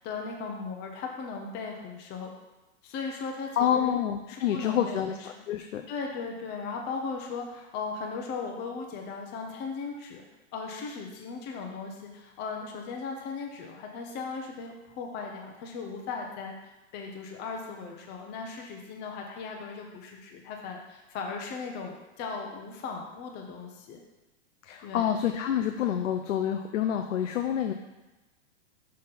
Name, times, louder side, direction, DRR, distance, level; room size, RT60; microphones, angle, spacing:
voice 1, 0.0-2.3 2.8-3.9 4.3-5.4 5.9-10.2 10.5-16.5 16.9-24.0 24.8-25.1, left 4 dB, 25° left, 1 dB, 0.8 m, -37 dB
voice 2, 3.6-5.9 24.6-27.7, left 9 dB, 75° left, 5 dB, 0.6 m, -28 dB
5.7 x 5.2 x 4.1 m, 1.1 s
hypercardioid pair, 135°, 38 cm